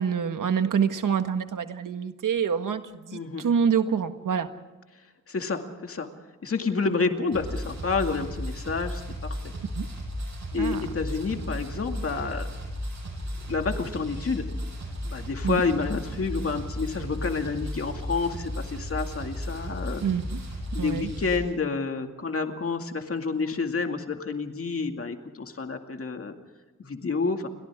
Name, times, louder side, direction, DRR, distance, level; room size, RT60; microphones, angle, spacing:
voice 1, 0.0-4.5 9.7-9.9 10.5-10.8 15.4-15.6 20.0-20.4 20.8-21.1, right 7 dB, 75° right, 8 dB, 1.6 m, -26 dB
voice 2, 3.1-3.4 5.3-6.1 6.4-9.5 10.5-12.5 13.5-14.5 15.0-20.0 20.7-26.3 26.8-27.5, left 4 dB, 45° left, 4 dB, 2.3 m, -29 dB
sound 1, 7.3-21.4, equal, 60° right, 7.7 m, -35 dB
30.0 x 24.0 x 3.7 m, 1.2 s
wide cardioid pair, 155°, 32 cm